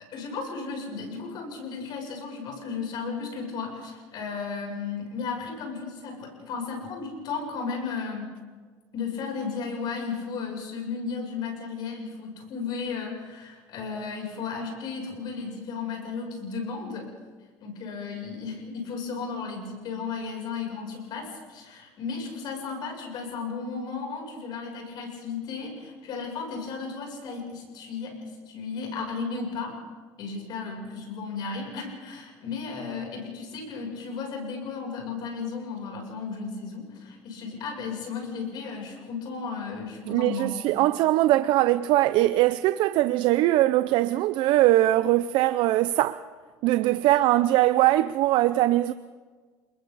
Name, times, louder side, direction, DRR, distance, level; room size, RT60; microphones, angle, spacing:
voice 1, 0.0-8.3 8.9-17.1 17.6-29.8 30.2-40.6, left 5 dB, 55° left, 7.6 m, -34 dB
voice 2, 40.1-46.2 46.6-48.9, right 15 dB, 65° right, 0.5 m, -21 dB
29.5 x 21.5 x 4.1 m
cardioid pair, 115°, 9 cm